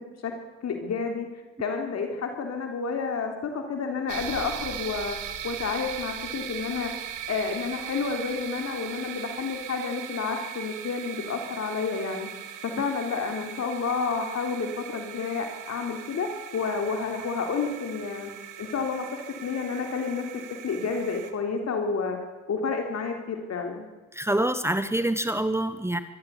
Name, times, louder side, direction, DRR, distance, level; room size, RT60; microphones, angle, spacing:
voice 1, 0.6-1.3 1.6-5.2 5.4-6.9 7.3-18.3 18.6-20.2 20.6-22.2 22.5-23.9, left 5 dB, 60° left, 4 dB, 3.4 m, -30 dB
sound 1, 4.1-21.3, right 9 dB, 85° right, 2.3 m, -39 dB
voice 2, 24.1-26.0, right 1 dB, 10° right, 11 dB, 1.2 m, -26 dB
23.0 x 14.5 x 8.4 m, 1.2 s
cardioid pair, 90°, 30 cm